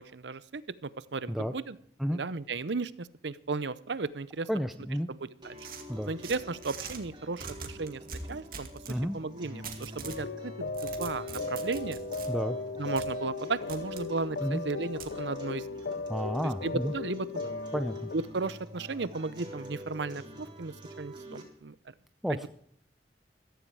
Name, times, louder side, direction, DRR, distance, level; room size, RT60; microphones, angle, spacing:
voice 1, 0.0-1.8 2.1-4.5 5.1-5.6 6.1-8.0 8.3-12.0 12.8-15.8 16.6-17.5 18.1-21.7 22.3-22.5, right 3 dB, 80° right, 17 dB, 0.7 m, -35 dB
voice 2, 4.5-5.1 5.9-6.1 8.9-9.2 12.3-12.6 14.4-14.6 16.1-16.9 17.7-18.1 22.2-22.5, equal, ahead, 7 dB, 0.5 m, -31 dB
sound 1, 5.4-21.4, equal, 25° right, 4.0 m, -47 dB
sound 2, 5.6-7.0 7.4-9.0 9.6-10.2 10.6-12.3 13.0-13.1 13.7-14.1 15.0-15.1, right 5 dB, 55° right, 2.2 m, -42 dB
sound 3, 10.0-18.2, left 3 dB, 70° left, 0.7 m, -37 dB
15.0 x 14.5 x 4.7 m, 0.65 s
head